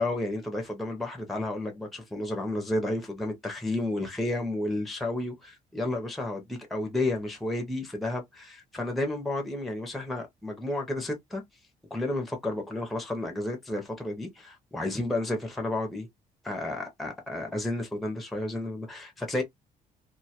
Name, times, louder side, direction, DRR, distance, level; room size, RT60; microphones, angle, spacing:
voice 1, 0.0-11.4 11.9-16.1 16.4-19.4, left 2 dB, ahead, 0.4 m, -31 dB
2.1 x 2.1 x 2.7 m
cardioid pair, 175°, 15 cm